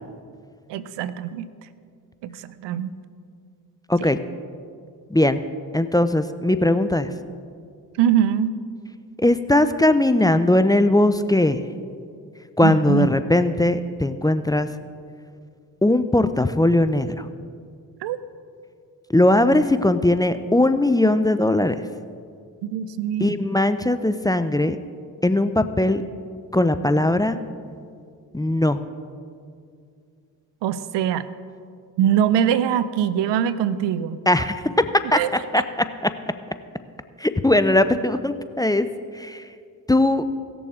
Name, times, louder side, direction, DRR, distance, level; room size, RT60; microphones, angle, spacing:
voice 1, 0.7-1.5 2.2-2.9 4.0-4.1 8.0-8.5 12.6-13.1 18.0-18.2 22.6-23.3 30.6-31.3 32.0-34.2 35.1-35.3, right 9 dB, 75° right, 15 dB, 0.6 m, -22 dB
voice 2, 5.1-5.4 5.7-7.1 9.2-11.6 12.6-14.7 15.8-17.3 19.1-21.8 23.2-24.8 25.2-26.0 26.5-27.4 28.3-28.8 34.3-34.9 35.1-35.2 35.5-35.6 37.2-38.9 39.1-39.4 39.9-40.2, left 1 dB, 10° left, 10 dB, 0.5 m, -19 dB
17.5 x 6.9 x 3.7 m, 2.3 s
hypercardioid pair, 40°, 43 cm